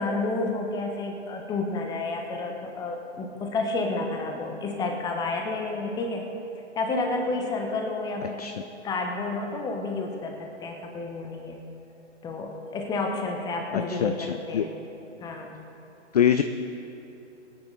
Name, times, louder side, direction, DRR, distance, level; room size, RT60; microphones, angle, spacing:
voice 1, 0.0-6.2 6.8-8.5 8.8-11.6 12.2-14.7 15.2-15.5, left 3 dB, 10° left, 3 dB, 1.1 m, -30 dB
voice 2, 13.7-14.6 16.1-16.4, left 9 dB, 35° left, 9 dB, 0.4 m, -24 dB
22.0 x 9.7 x 4.0 m, 3.0 s
figure-of-eight pair, 130°, 36 cm